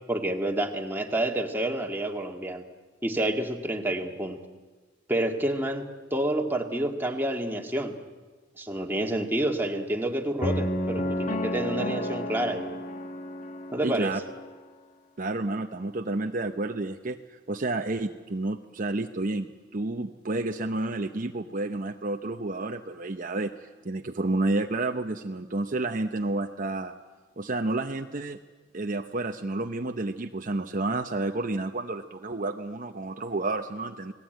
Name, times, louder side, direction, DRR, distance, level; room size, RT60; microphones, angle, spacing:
voice 1, 0.1-2.6 3.0-4.4 5.1-7.9 8.6-12.7 13.7-14.1, right 1 dB, 10° right, 2 dB, 1.9 m, -29 dB
sound 1, 10.4-14.5, left 1 dB, 40° left, 1.1 m, -31 dB
voice 2, 13.8-14.2 15.2-26.9 27.4-28.4 28.7-34.1, right 2 dB, 45° right, 5 dB, 0.8 m, -30 dB
29.0 x 19.5 x 9.2 m, 1.3 s
head